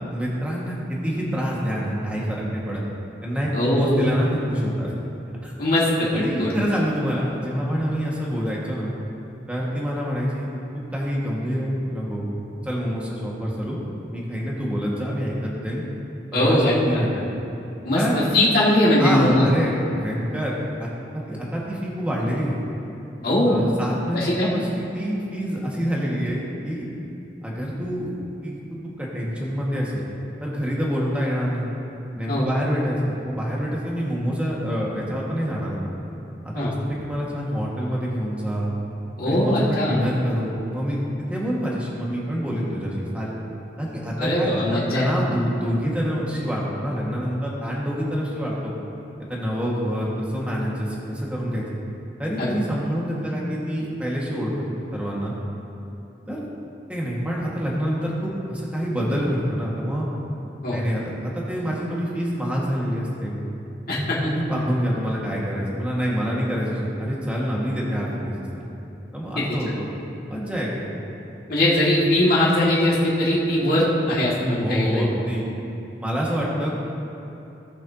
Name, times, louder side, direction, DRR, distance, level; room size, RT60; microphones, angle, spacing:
voice 1, 0.0-2.8 3.2-4.9 5.4-5.5 6.1-8.9 9.5-10.5 10.9-12.3 12.6-13.8 14.1-15.8 16.3-17.2 18.0-18.2 19.0-22.6 23.5-26.9 27.4-28.1 28.4-30.1 30.4-31.7 32.1-35.9 36.4-38.7 39.2-41.0 41.3-43.4 43.8-48.7 49.3-51.6 52.2-54.7 54.9-55.3 56.3-56.5 56.9-60.1 60.7-63.4 64.2-68.4 69.1-69.9 70.3-70.9 74.6-75.4 76.0-76.7, equal, 10° right, -5 dB, 1.7 m, -26 dB
voice 2, 3.5-4.1 5.6-6.1 6.4-6.5 16.3-17.0 17.8-19.5 23.2-23.6 24.1-24.5 32.3-32.5 36.5-36.7 39.2-40.1 44.2-45.1 52.4-52.6 60.6-60.8 63.9-64.2 69.4-69.5 71.5-75.1, left 1 dB, 55° left, -7 dB, 2.2 m, -20 dB
18.5 x 7.0 x 2.9 m, 3.0 s
head